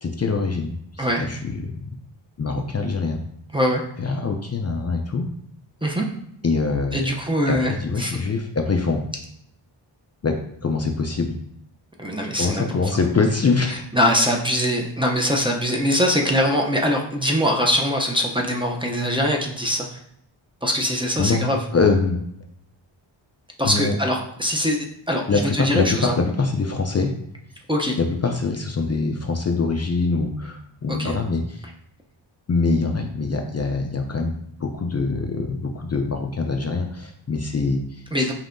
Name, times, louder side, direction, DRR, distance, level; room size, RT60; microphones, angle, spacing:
voice 1, 0.0-1.9 2.4-3.2 4.0-5.3 6.4-7.1 7.5-9.0 10.2-10.4 10.6-11.4 12.4-13.8 21.2-22.2 23.6-24.0 25.3-27.1 28.0-31.6 32.5-38.3, left 4 dB, 35° left, 3 dB, 0.5 m, -24 dB
voice 2, 3.5-3.8 5.8-6.1 6.9-8.2 12.0-12.7 13.9-20.0 20.6-21.6 23.6-26.1 27.7-28.0 30.9-31.1 38.1-38.3, equal, 10° right, 0 dB, 0.6 m, -22 dB
5.2 x 2.8 x 2.6 m, 0.72 s
wide cardioid pair, 70°, 46 cm